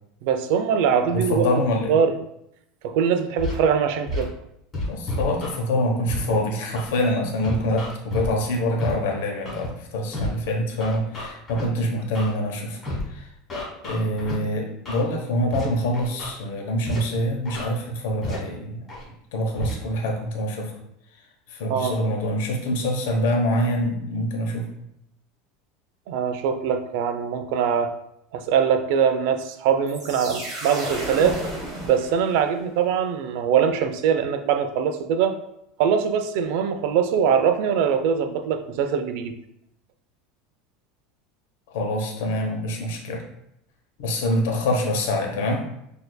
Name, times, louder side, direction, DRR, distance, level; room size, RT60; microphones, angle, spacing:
voice 1, 0.2-1.5 1.9-2.1 2.8-4.3 21.7-21.9 26.1-27.9 28.3-31.4 31.8-35.4 35.8-39.3, right 7 dB, 60° right, 9 dB, 0.4 m, -22 dB
voice 2, 1.1-2.0 4.9-12.8 13.1-13.3 13.8-18.9 19.3-20.7 21.5-24.7 41.7-43.3 44.0-45.7, left 1 dB, 80° left, 2 dB, 0.9 m, -25 dB
Scratching (performance technique), 3.4-3.5 4.1-4.2 4.7-5.5 6.1-6.2 6.7-6.9 7.4-8.3 8.8-8.9 9.4-9.7 10.1-10.3 10.8-11.6 12.1-12.3 12.8-13.0 13.5-14.3 14.8-15.0 15.5-15.6 15.9-16.3 16.8-17.0 17.4-17.6 18.2-18.3 18.9-19.0 19.6-19.7, left 1 dB, 15° left, 1.3 m, -30 dB
sound 1, 29.9-32.7, right 1 dB, 35° right, 1.1 m, -33 dB
6.4 x 2.6 x 2.2 m, 0.78 s
supercardioid pair, 165°, 0 cm